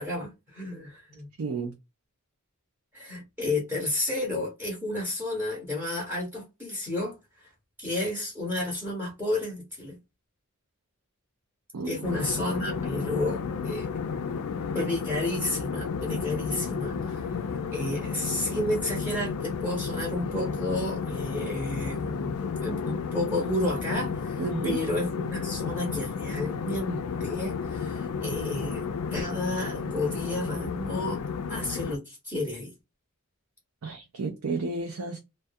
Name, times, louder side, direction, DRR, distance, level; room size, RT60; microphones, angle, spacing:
voice 1, 0.0-1.3 2.9-7.5 7.8-10.0 11.9-13.9 14.7-17.4 17.7-31.2 31.5-32.7, left 1 dB, 10° right, 0.8 m, -31 dB
voice 2, 1.4-1.7 11.7-12.0 24.4-24.8 33.8-35.2, right 3 dB, 75° right, 0.5 m, -31 dB
sound 1, 12.0-32.0, left 5 dB, 75° left, 0.4 m, -32 dB
2.3 x 2.2 x 2.6 m
head